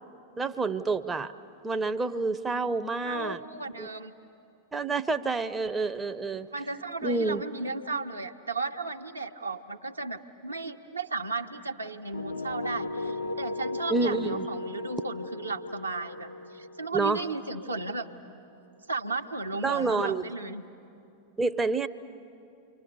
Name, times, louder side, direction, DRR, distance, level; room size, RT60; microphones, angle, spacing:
voice 1, 0.4-1.3 1.6-3.4 3.8-3.9 4.7-6.5 7.0-7.4 13.9-14.5 16.9-17.2 19.6-20.3 21.4-21.9, right 3 dB, 15° right, 9 dB, 0.6 m, -28 dB
voice 2, 3.0-4.1 6.5-18.1 18.9-20.6, right 3 dB, 80° right, 3 dB, 1.0 m, -35 dB
sound 1, 12.1-18.0, left 2 dB, 75° left, 4.1 m, -36 dB
30.0 x 24.5 x 6.9 m, 2.7 s
figure-of-eight pair, 90°, 0 cm